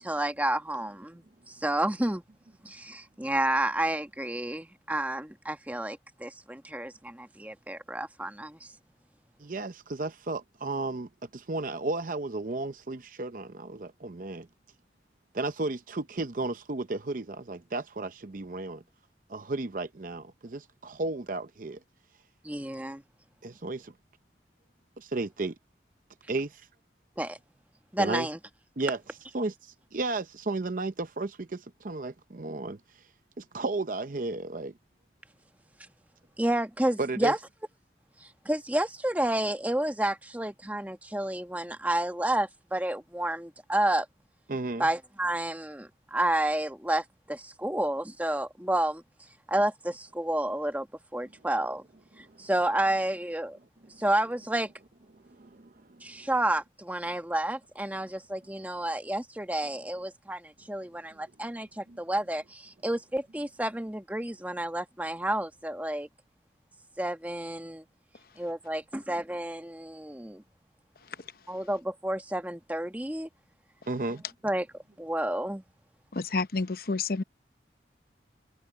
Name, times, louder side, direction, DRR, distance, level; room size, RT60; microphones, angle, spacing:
voice 1, 0.0-2.2 2.6-8.7 22.4-23.0 27.2-27.4 27.9-28.4 36.4-37.4 38.2-44.1 44.8-49.0 49.5-50.9 51.1-51.8 52.2-53.6 54.0-54.7 56.0-66.1 67.0-67.8 68.4-70.4 71.5-73.3 74.4-74.7 75.0-75.6, right 1 dB, 10° right, 1.2 m, -30 dB
voice 2, 9.4-14.5 15.3-18.8 19.3-21.8 23.4-23.9 25.0-25.6 26.3-26.6 28.0-28.3 28.8-29.0 29.3-32.8 33.4-34.7 37.0-37.3 44.5-44.9 55.2-56.0 61.9-62.0 73.9-74.2, right 2 dB, 50° right, 0.7 m, -33 dB
voice 3, 76.1-77.2, left 3 dB, 55° left, 0.8 m, -29 dB
head